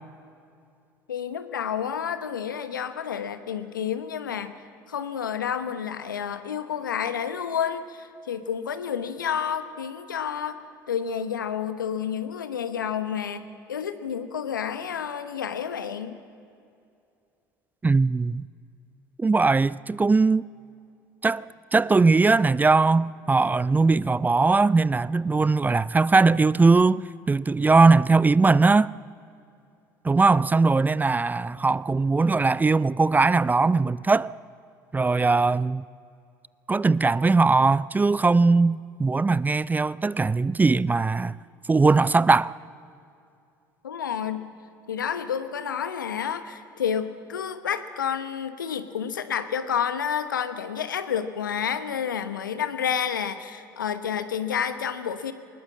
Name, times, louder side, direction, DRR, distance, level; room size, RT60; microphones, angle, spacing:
voice 1, 1.1-4.5 4.9-10.6 10.9-16.2 43.8-44.5 44.9-55.3, left 8 dB, 90° left, 1.0 m, -30 dB
voice 2, 17.8-18.4 19.2-20.4 21.2-21.4 21.7-28.9 30.0-34.3 34.9-35.8 36.7-41.3 41.7-42.5, right 3 dB, 15° right, 0.4 m, -20 dB
20.0 x 20.0 x 7.4 m
hypercardioid pair, 65°, 10 cm